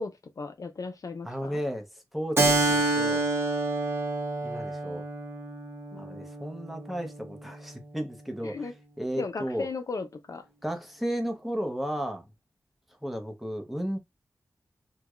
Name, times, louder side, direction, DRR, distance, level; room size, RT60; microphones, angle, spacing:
voice 1, 0.0-1.6 5.9-6.3 8.4-8.7 9.2-10.4, left 4 dB, 55° left, 0.4 m, -36 dB
voice 2, 1.2-1.9 2.1-3.3 4.4-5.0 6.0-8.7 9.0-9.7 10.6-12.2 13.0-14.0, equal, ahead, 0.7 m, -34 dB
Keyboard (musical), 2.4-7.5, right 2 dB, 35° right, 0.8 m, -28 dB
4.5 x 2.2 x 2.3 m
wide cardioid pair, 105°, 7 cm